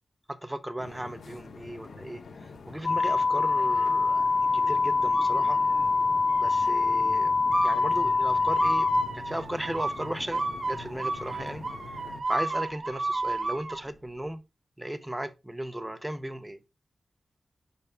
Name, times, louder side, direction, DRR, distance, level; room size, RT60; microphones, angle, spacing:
voice 1, 0.3-5.6 6.4-7.3 7.6-8.9 9.1-11.6 12.1-14.4 14.8-16.6, right 1 dB, 10° right, 0.9 m, -36 dB
sound 1, 0.8-12.2, left 4 dB, 85° left, 1.1 m, -45 dB
sound 2, 2.8-9.1, left 4 dB, 40° left, 0.4 m, -24 dB
sound 3, 5.1-5.9 6.3-6.8 7.5-13.8, right 2 dB, 45° right, 1.7 m, -32 dB
6.9 x 5.3 x 3.6 m
wide cardioid pair, 120°, 0 cm